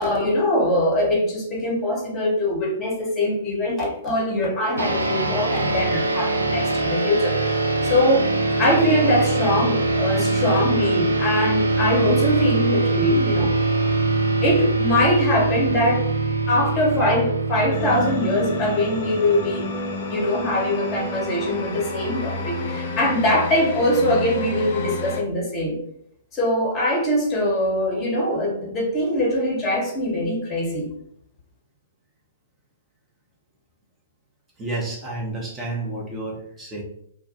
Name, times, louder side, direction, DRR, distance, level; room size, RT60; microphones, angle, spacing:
voice 1, 0.0-8.2 8.6-13.5 14.4-16.1 16.5-19.7 20.1-25.8 26.3-30.9, left 1 dB, 20° left, -2 dB, 0.9 m, -22 dB
sound 1, 4.8-19.6, right 3 dB, 75° right, 0.3 m, -23 dB
sound 2, 17.7-25.2, left 2 dB, 50° left, 0.4 m, -30 dB
voice 2, 34.6-36.8, right 2 dB, 15° right, -3 dB, 0.7 m, -30 dB
2.2 x 2.1 x 2.8 m, 0.70 s
figure-of-eight pair, 110°, 0 cm